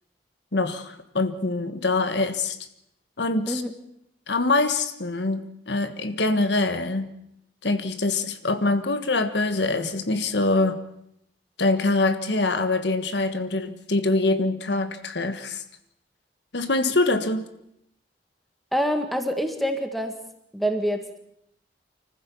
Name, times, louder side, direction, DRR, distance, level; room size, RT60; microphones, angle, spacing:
voice 1, 0.5-2.6 3.2-3.6 4.3-7.1 7.6-10.8 11.6-15.6 16.5-17.5, left 2 dB, 75° left, 9 dB, 1.5 m, -24 dB
voice 2, 18.7-20.2 20.5-21.2, equal, ahead, 6 dB, 1.6 m, -26 dB
25.5 x 15.0 x 7.1 m, 0.77 s
head